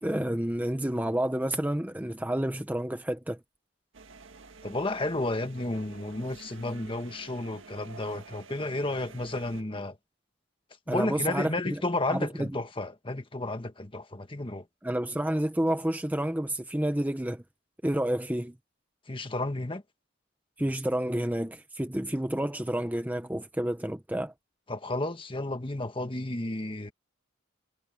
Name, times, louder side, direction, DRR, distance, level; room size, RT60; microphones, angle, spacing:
voice 1, 0.0-3.4 10.9-11.8 12.1-12.5 14.8-17.4 17.8-18.6 20.6-24.3, right 1 dB, 10° right, 0.8 m, -29 dB
sound 1, 3.9-9.6, right 4 dB, 75° right, 1.6 m, -49 dB
voice 2, 4.6-10.0 10.9-14.6 19.1-19.8 24.7-26.9, left 2 dB, 25° left, 1.5 m, -32 dB
head